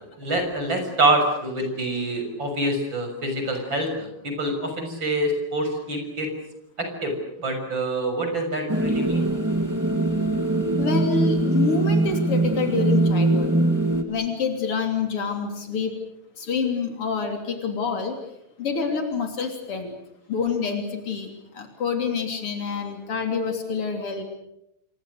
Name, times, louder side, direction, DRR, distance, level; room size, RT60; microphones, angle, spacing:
voice 1, 0.2-6.3 6.8-7.1 7.4-9.3, right 1 dB, 60° right, 5 dB, 7.2 m, -26 dB
sound 1, 8.7-14.0, right 2 dB, 10° right, 2.0 m, -22 dB
voice 2, 10.8-13.5 14.1-15.9 16.4-18.2 18.6-19.9 20.3-21.3 21.5-24.2, left 5 dB, 90° left, 4 dB, 4.1 m, -27 dB
28.5 x 24.5 x 6.6 m, 0.83 s
omnidirectional pair, 2.4 m